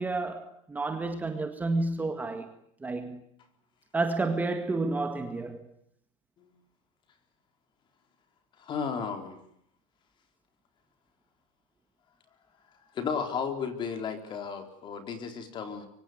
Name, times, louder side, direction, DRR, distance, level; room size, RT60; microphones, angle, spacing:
voice 1, 0.0-2.5 2.8-3.2 3.9-5.7, right 3 dB, 10° right, 1.8 m, -30 dB
voice 2, 8.6-9.4 12.9-15.9, left 6 dB, 30° left, 4.2 m, -34 dB
24.5 x 24.5 x 9.4 m
supercardioid pair, 155°, 17 cm